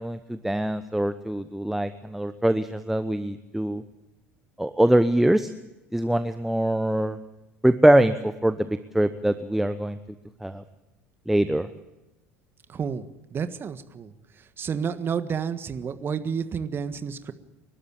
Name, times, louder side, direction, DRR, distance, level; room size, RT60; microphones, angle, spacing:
voice 1, 0.0-3.8 4.6-5.5 5.9-7.2 7.6-10.0 10.4-10.6 11.3-11.7, right 1 dB, 5° right, 11 dB, 0.9 m, -23 dB
voice 2, 12.7-13.0 13.3-14.1 14.6-17.3, right 6 dB, 30° right, 11 dB, 1.6 m, -30 dB
29.0 x 12.5 x 8.7 m, 1.0 s
figure-of-eight pair, 70°, 7 cm